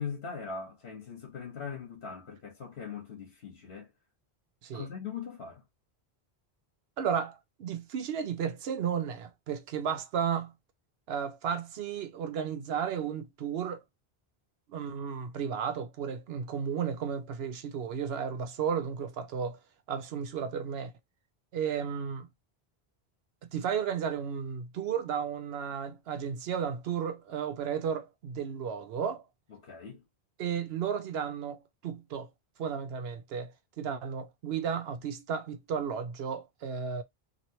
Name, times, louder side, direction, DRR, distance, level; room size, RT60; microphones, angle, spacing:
voice 1, 0.0-3.9 4.7-5.6 29.5-30.0, left 6 dB, 75° left, 1.2 m, -40 dB
voice 2, 7.0-10.5 11.1-13.8 14.7-19.6 19.9-20.9 21.5-22.3 23.5-29.2 30.4-32.3 32.6-37.0, right 7 dB, 75° right, 0.8 m, -33 dB
3.0 x 2.8 x 2.6 m
omnidirectional pair, 1.0 m